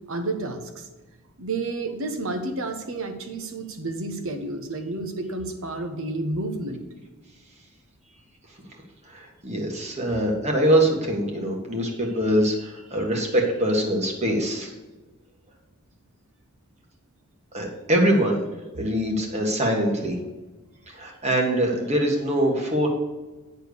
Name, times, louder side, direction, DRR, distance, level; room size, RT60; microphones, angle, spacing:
voice 1, 0.1-0.9 1.4-6.8, right 2 dB, 60° right, 5 dB, 1.2 m, -30 dB
voice 2, 9.1-14.7 17.5-18.4 18.8-20.2 20.9-22.9, right 1 dB, 30° right, 1 dB, 1.7 m, -23 dB
10.0 x 4.5 x 6.8 m, 1.2 s
head